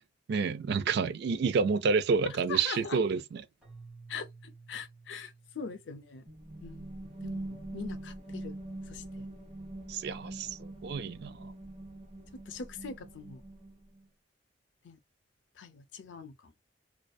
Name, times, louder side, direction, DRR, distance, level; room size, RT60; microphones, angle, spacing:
voice 1, 0.3-3.4 9.9-11.5, right 5 dB, 65° right, 0.3 m, -29 dB
voice 2, 2.5-3.0 4.1-6.2 6.6-6.9 7.2-8.5 8.9-9.3 12.5-13.4 14.8-15.0 15.6-16.5, left 5 dB, 80° left, 0.5 m, -42 dB
Keyboard (musical), 3.6-6.7, right 4 dB, 5° right, 1.1 m, -54 dB
sound 1, 6.3-14.1, right 1 dB, 35° right, 1.0 m, -43 dB
2.5 x 2.3 x 2.2 m
head